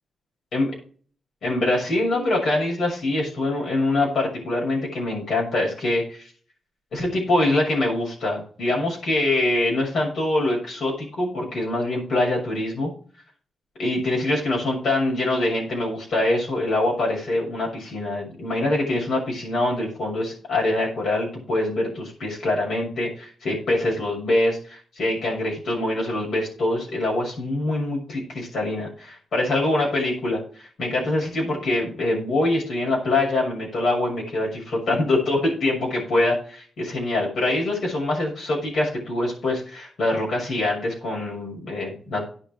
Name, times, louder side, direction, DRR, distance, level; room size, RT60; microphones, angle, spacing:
voice 1, 1.4-6.3 6.9-12.9 13.8-42.3, left 2 dB, 75° left, -2 dB, 6.6 m, -24 dB
17.0 x 6.0 x 4.6 m, 0.44 s
cardioid pair, 105°, 0 cm